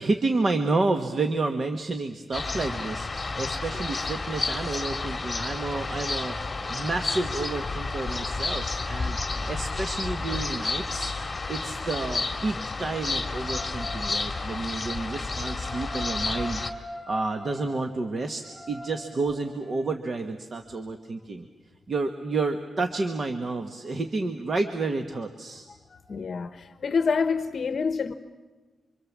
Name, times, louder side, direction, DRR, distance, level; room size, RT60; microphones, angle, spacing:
voice 1, 0.0-6.4 6.7-9.2 9.5-11.1 11.5-16.6 17.1-21.5 21.9-25.7, right 3 dB, 40° right, 1.4 m, -30 dB
sound 1, 2.3-16.7, left 3 dB, 25° left, 1.9 m, -31 dB
sound 2, 5.3-10.4 12.4-19.9, left 1 dB, 20° right, 6.7 m, -45 dB
voice 2, 25.9-28.1, left 5 dB, 50° left, 0.9 m, -27 dB
26.5 x 25.5 x 7.4 m
wide cardioid pair, 145°, 0 cm